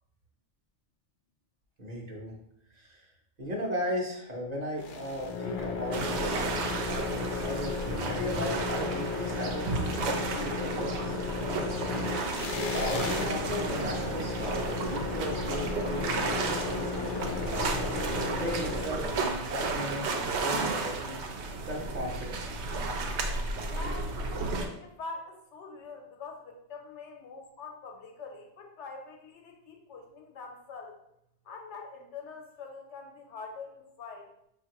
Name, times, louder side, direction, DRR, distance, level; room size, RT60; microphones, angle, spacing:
voice 1, 1.8-2.4 2.7-3.1 3.4-6.5 6.8-17.5 18.1-21.2 21.6-22.6, equal, 45° right, -1 dB, 0.7 m, -37 dB
sound 1, 4.8-19.4, left 4 dB, 60° left, 0.6 m, -34 dB
sound 2, 5.9-24.7, right 3 dB, 75° right, 0.9 m, -33 dB
voice 2, 23.7-31.0 31.4-34.3, left 4 dB, 85° left, 2 dB, 1.0 m, -44 dB
5.1 x 2.5 x 2.9 m, 0.77 s
omnidirectional pair, 1.2 m